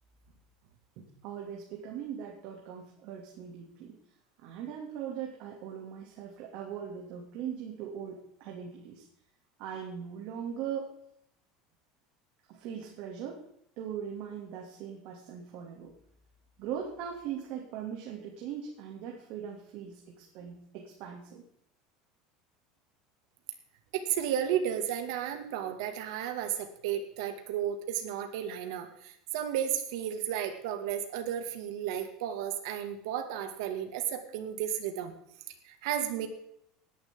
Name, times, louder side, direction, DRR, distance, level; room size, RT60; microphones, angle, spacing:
voice 1, 1.0-3.9 4.4-9.1 9.6-10.9 12.5-13.4 13.8-15.9 16.6-21.4, right 8 dB, 60° right, 0 dB, 2.8 m, -40 dB
voice 2, 23.9-35.1 35.6-36.3, right 10 dB, 80° right, 6 dB, 2.3 m, -33 dB
19.0 x 11.0 x 3.9 m, 0.71 s
supercardioid pair, 140°, 2 cm